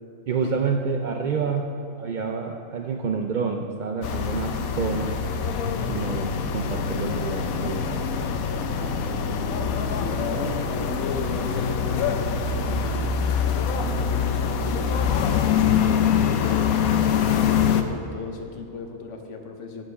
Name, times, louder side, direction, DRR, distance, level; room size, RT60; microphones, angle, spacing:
voice 1, 0.3-1.6 2.0-5.2 5.9-7.9, right 5 dB, 75° right, 3 dB, 0.4 m, -28 dB
sound 1, 4.0-17.8, left 7 dB, 85° left, 1.1 m, -24 dB
voice 2, 8.7-13.1 13.8-16.9 17.6-19.8, left 4 dB, 60° left, 4 dB, 1.1 m, -35 dB
8.7 x 4.8 x 6.7 m, 2.7 s
omnidirectional pair, 1.4 m